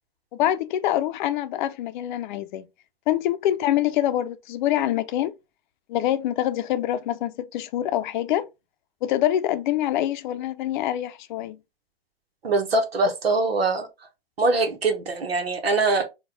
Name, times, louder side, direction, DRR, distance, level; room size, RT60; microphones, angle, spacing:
voice 1, 0.3-2.6 3.1-5.3 5.9-8.5 9.0-11.6, left 12 dB, 55° left, 0.6 m, -25 dB
voice 2, 12.4-13.9 14.4-16.0, right 3 dB, 85° right, 1.0 m, -23 dB
4.2 x 2.3 x 3.4 m
hypercardioid pair, 105°, 30 cm